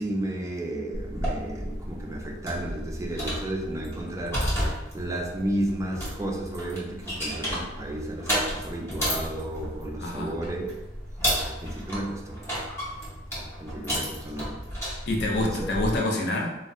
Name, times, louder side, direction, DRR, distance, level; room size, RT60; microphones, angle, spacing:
voice 1, 0.0-10.7 11.4-12.4 13.3-14.7 15.4-15.6, right 1 dB, 15° right, 0 dB, 0.4 m, -33 dB
sound 1, 0.9-16.0, equal, 15° left, 0.9 m, -32 dB
voice 2, 10.0-10.4 13.9-14.0 15.1-16.6, left 2 dB, 60° left, 0 dB, 0.5 m, -27 dB
2.6 x 2.0 x 3.3 m, 1.0 s
head